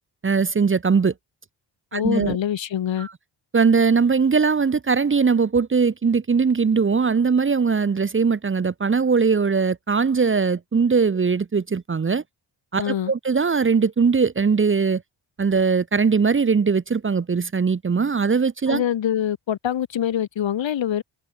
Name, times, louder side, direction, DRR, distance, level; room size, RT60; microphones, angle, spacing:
voice 1, 0.2-1.1 1.9-2.4 3.0-3.1 3.5-12.2 12.7-15.0 15.4-18.8, right 5 dB, 25° right, 1.0 m, -20 dB
voice 2, 1.9-3.1 12.8-13.1 18.7-21.0, left 10 dB, 75° left, 6.4 m, -25 dB
cardioid pair, 100°, 45 cm